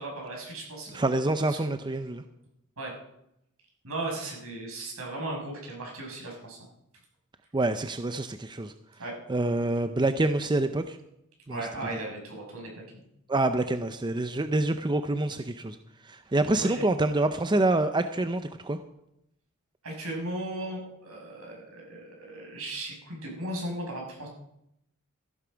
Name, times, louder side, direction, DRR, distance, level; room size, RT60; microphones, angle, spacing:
voice 1, 0.0-1.6 2.8-2.9 3.8-6.6 9.0-9.1 11.5-13.0 16.6-16.8 19.8-24.3, right 1 dB, 80° right, -1 dB, 6.1 m, -37 dB
voice 2, 0.9-2.2 7.5-8.7 9.3-11.0 11.5-11.6 13.3-15.8 16.1-18.8, right 2 dB, 20° right, 9 dB, 0.6 m, -26 dB
15.0 x 12.0 x 5.1 m, 0.81 s
head